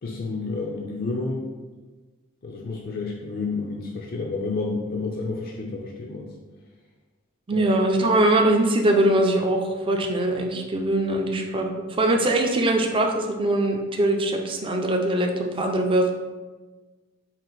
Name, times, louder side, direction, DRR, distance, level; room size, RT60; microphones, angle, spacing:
voice 1, 0.0-1.5 2.4-6.3 7.5-7.7, left 3 dB, 50° left, -1 dB, 0.4 m, -30 dB
voice 2, 7.5-11.7 12.0-16.1, right 1 dB, 25° right, 2 dB, 0.4 m, -22 dB
4.3 x 2.4 x 3.8 m, 1.3 s
head